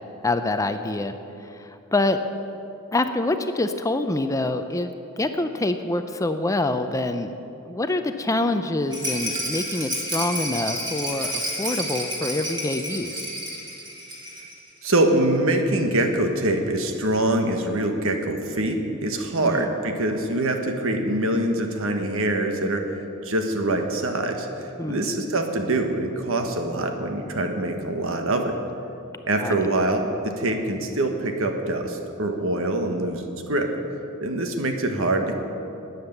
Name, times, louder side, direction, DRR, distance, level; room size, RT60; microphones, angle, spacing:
voice 1, 0.2-2.2 2.9-4.9 5.2-7.3 7.7-13.2 19.4-19.7 24.8-25.0 29.4-29.7, left 2 dB, 15° left, 8 dB, 0.5 m, -26 dB
Rattle, 8.9-14.6 14.9-15.0 15.2-15.3, equal, 20° right, 2.5 m, -30 dB
voice 2, 14.8-23.0 23.2-28.5 29.3-33.7 34.2-35.4, right 1 dB, 65° right, 5 dB, 1.4 m, -24 dB
13.0 x 9.5 x 8.0 m, 2.8 s
head